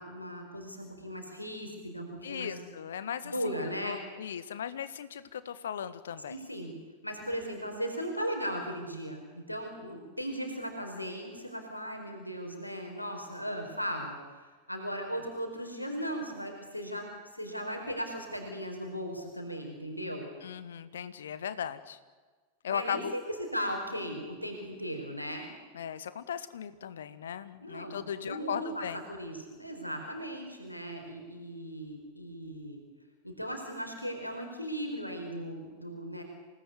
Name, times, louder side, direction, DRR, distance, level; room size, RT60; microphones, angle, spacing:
voice 1, 0.0-2.7 3.2-4.0 6.3-6.7 7.0-17.1 17.3-20.3 22.7-25.5 27.6-32.8 33.2-36.2, equal, 85° left, 3 dB, 4.6 m, -37 dB
voice 2, 2.2-3.3 3.6-6.4 20.4-22.0 22.6-23.1 25.7-29.0, left 8 dB, 65° left, 14 dB, 1.6 m, -37 dB
28.0 x 19.0 x 9.6 m, 1.4 s
figure-of-eight pair, 90°, 0 cm